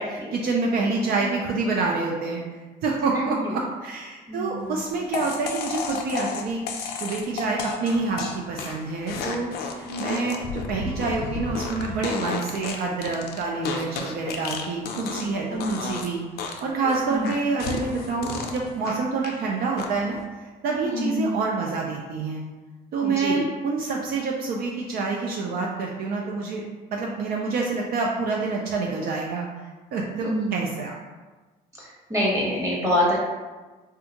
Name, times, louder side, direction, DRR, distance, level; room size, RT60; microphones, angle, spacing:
voice 1, 0.0-6.6 7.0-9.5 9.8-16.2 16.6-22.4 22.9-26.6 26.9-29.5 29.9-31.0, right 4 dB, 60° right, -1 dB, 0.4 m, -27 dB
voice 2, 4.3-4.8 9.8-10.0 15.1-15.2 15.5-15.7 17.1-17.3 20.8-21.3 23.0-23.4 30.2-30.7 31.8-33.2, equal, 20° right, -5 dB, 1.1 m, -26 dB
sound 1, 5.1-15.4 15.6-16.1 16.4-19.4 19.8-20.2, left 5 dB, 70° left, 0.5 m, -32 dB
3.3 x 2.3 x 2.8 m, 1.2 s
cardioid pair, 110°, 17 cm